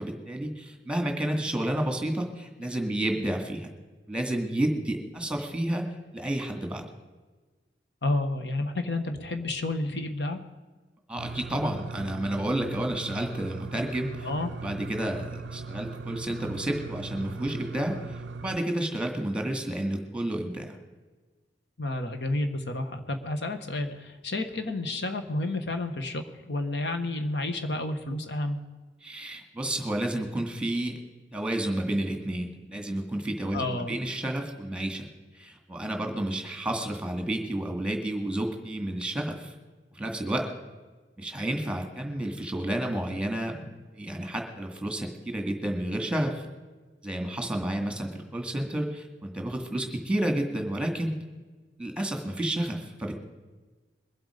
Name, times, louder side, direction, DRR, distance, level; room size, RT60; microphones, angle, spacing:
voice 1, 0.0-3.7 4.1-5.8 6.1-6.8 11.1-14.3 14.6-20.8 29.0-31.0 31.3-35.1 35.3-39.5 39.9-40.5 41.2-46.5 47.0-51.2 51.8-53.2, right 1 dB, 5° right, 4 dB, 2.1 m, -31 dB
voice 2, 8.0-10.4 14.2-14.5 21.8-28.6 33.5-33.9, left 2 dB, 70° left, 6 dB, 1.4 m, -30 dB
sound 1, 11.2-18.6, right 4 dB, 85° right, 0.5 m, -39 dB
22.5 x 8.0 x 5.1 m, 1.3 s
head